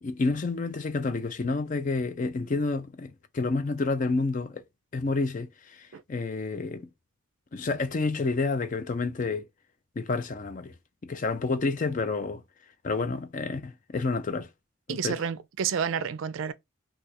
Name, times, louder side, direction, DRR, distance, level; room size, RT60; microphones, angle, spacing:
voice 1, 0.0-4.6 4.9-5.5 5.8-6.9 7.5-9.4 10.0-10.7 11.0-12.4 12.8-14.5 14.9-15.2, left 3 dB, 40° left, 0.4 m, -29 dB
voice 2, 14.9-16.5, right 7 dB, 70° right, 0.4 m, -30 dB
2.4 x 2.3 x 4.1 m
head